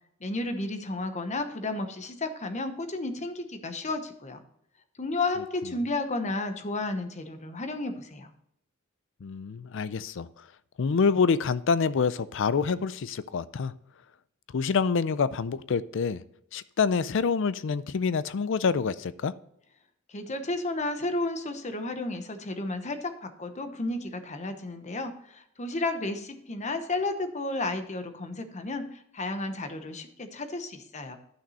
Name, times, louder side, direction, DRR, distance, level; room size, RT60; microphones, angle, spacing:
voice 1, 0.2-4.4 5.0-8.3 20.1-31.2, left 2 dB, 35° left, 0.9 m, -32 dB
voice 2, 9.2-10.3 10.8-13.7 14.5-16.2 16.5-19.3, left 5 dB, 65° left, 0.4 m, -26 dB
11.0 x 6.1 x 4.1 m
head